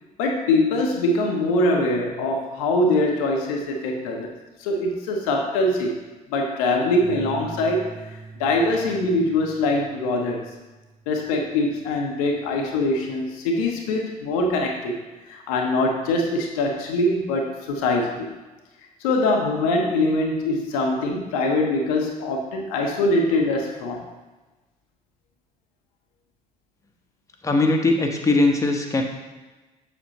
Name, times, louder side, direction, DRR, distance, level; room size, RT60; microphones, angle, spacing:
voice 1, 0.2-4.3 4.6-6.0 6.3-7.9 8.4-10.4 11.1-14.9 15.3-18.3 19.0-24.0, left 2 dB, 65° left, 1 dB, 0.9 m, -23 dB
sound 1, 7.0-13.3, right 4 dB, 70° right, 1.3 m, -43 dB
voice 2, 27.4-29.0, left 2 dB, 15° left, 2 dB, 1.0 m, -20 dB
7.1 x 6.8 x 2.9 m, 1.2 s
figure-of-eight pair, 50°, 19 cm